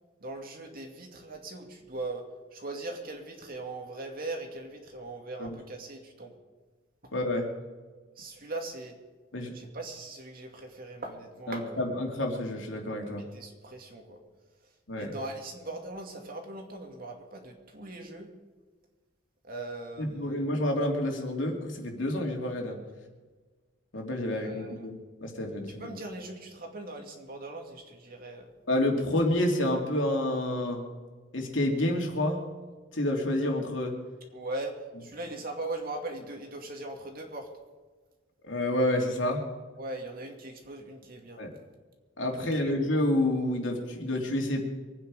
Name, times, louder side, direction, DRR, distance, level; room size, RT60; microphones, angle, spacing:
voice 1, 0.2-6.3 8.2-9.0 9.5-11.8 13.1-14.2 15.0-18.3 19.4-20.4 24.3-24.9 25.8-28.5 34.3-37.5 39.8-41.4 42.4-42.7, right 2 dB, 50° right, 2 dB, 2.4 m, -40 dB
voice 2, 7.1-7.5 9.3-9.5 11.5-13.2 14.9-15.1 20.0-22.8 23.9-26.0 28.7-30.8 31.3-32.4 32.9-33.9 38.4-39.4 41.4-41.5 42.2-44.6, left 1 dB, 75° left, 1 dB, 2.8 m, -29 dB
24.5 x 9.3 x 4.9 m, 1.4 s
head